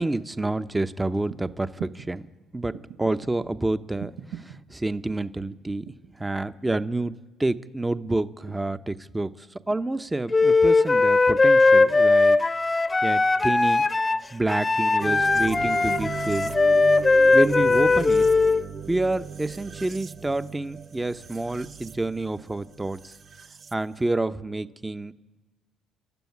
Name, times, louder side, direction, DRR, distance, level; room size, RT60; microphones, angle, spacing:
voice 1, 0.0-2.3 2.5-5.8 6.2-12.4 13.0-13.9 14.3-16.6 17.3-18.3 18.9-23.1 23.7-25.1, right 2 dB, 15° right, 11 dB, 0.8 m, -28 dB
sound 1, 1.3-1.4 1.8-2.1 2.7-3.3 4.0-4.6 5.5-6.1 6.5-7.1 8.1-8.8 9.7-9.8, right 8 dB, 90° right, 1.4 m, -41 dB
Wind instrument woodwind instrument, 10.3-18.6, left 3 dB, 20° left, 0.9 m, -19 dB
sound 2, 15.0-23.7, right 6 dB, 45° right, 0.9 m, -37 dB
28.0 x 12.5 x 9.6 m, 1.2 s
supercardioid pair, 80°, 0 cm